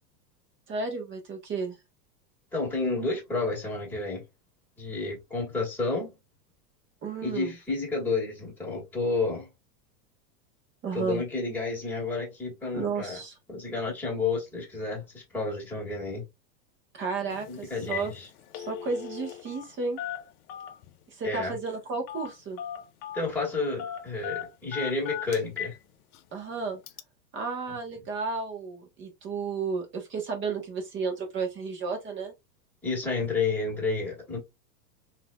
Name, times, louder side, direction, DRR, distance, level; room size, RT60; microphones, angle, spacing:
voice 1, 0.7-1.8 7.0-7.5 10.8-11.2 12.7-13.3 17.0-18.1 18.5-20.0 21.2-22.6 26.3-26.8 27.3-32.3, right 4 dB, 25° right, 1.1 m, -32 dB
voice 2, 2.5-4.2 4.8-6.1 7.2-9.5 10.9-13.2 13.5-16.2 17.2-18.3 21.2-21.6 23.1-25.7 32.8-34.4, left 3 dB, 5° left, 1.9 m, -30 dB
Telephone, 17.3-17.5 17.8-18.1 18.4-19.7 20.0-20.9 22.1-22.3 22.6-23.3 23.8-25.8 26.1-26.2 26.9-27.0, left 10 dB, 60° left, 0.6 m, -37 dB
3.9 x 2.8 x 2.3 m
supercardioid pair, 140°, 50 cm